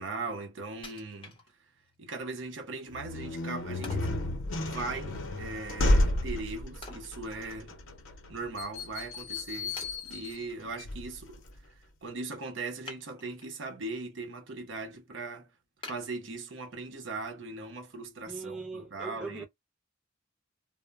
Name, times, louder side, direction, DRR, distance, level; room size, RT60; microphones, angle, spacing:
voice 1, 0.0-1.7 2.0-4.1 4.6-7.8 8.3-9.8 10.0-11.7 12.0-15.5 15.9-19.4, right 3 dB, 65° right, 0.7 m, -39 dB
Wood, 0.8-1.9 2.4-2.5 3.8-4.2 6.8-7.9 8.3-8.4 9.1-9.2 9.8-10.4 12.8-13.6 14.1-14.5 14.9-15.0 15.8-16.8 17.3-17.4, left 3 dB, 25° left, 0.8 m, -48 dB
sound 1, 2.9-11.6, left 1 dB, 80° left, 0.7 m, -32 dB
voice 2, 18.3-19.4, right 3 dB, 5° right, 0.3 m, -40 dB
2.1 x 2.1 x 3.3 m
head